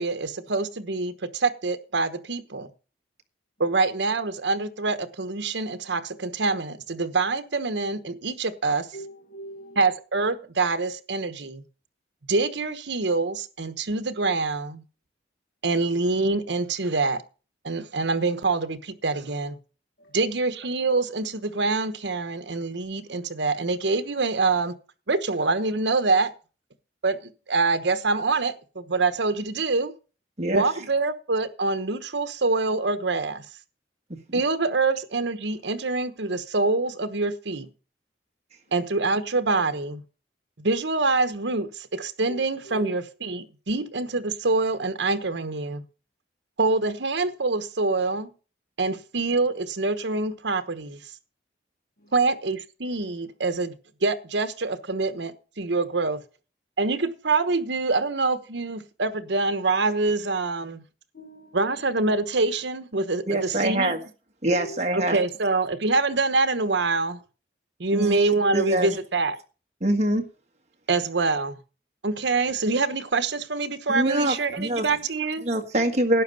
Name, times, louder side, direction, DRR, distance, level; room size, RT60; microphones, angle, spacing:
voice 1, 0.0-2.7 3.6-8.9 9.8-11.6 12.3-14.8 15.6-17.2 17.6-19.6 20.1-24.7 25.1-26.3 27.0-29.9 30.5-33.4 34.3-37.7 38.7-40.0 40.6-45.8 46.6-48.3 48.8-51.0 52.1-53.7 54.0-56.2 56.8-60.8 61.5-63.9 64.9-67.2 67.8-69.4 70.9-71.6 72.0-75.4, right 3 dB, 75° right, 1.1 m, -25 dB
voice 2, 8.9-9.9 20.0-20.2 42.3-42.9 52.0-52.1 61.1-61.6 64.6-64.8, right 1 dB, 55° left, 1.6 m, -41 dB
voice 3, 63.3-64.0 64.4-65.2 67.9-68.2 68.5-69.0 69.8-70.2 73.9-74.9 75.4-76.2, right 1 dB, 35° right, 1.7 m, -24 dB
11.5 x 8.5 x 5.3 m
head